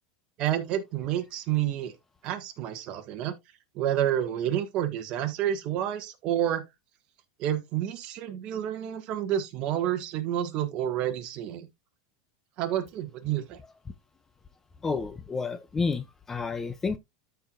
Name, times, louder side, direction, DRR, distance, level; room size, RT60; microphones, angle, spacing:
voice 1, 0.4-2.0 2.2-3.3 3.7-6.6 7.4-11.7 12.6-13.6, right 11 dB, 40° right, 1.5 m, -29 dB
voice 2, 14.8-17.0, left 4 dB, 15° left, 0.4 m, -30 dB
13.5 x 4.6 x 2.4 m
supercardioid pair, 150°, 3 cm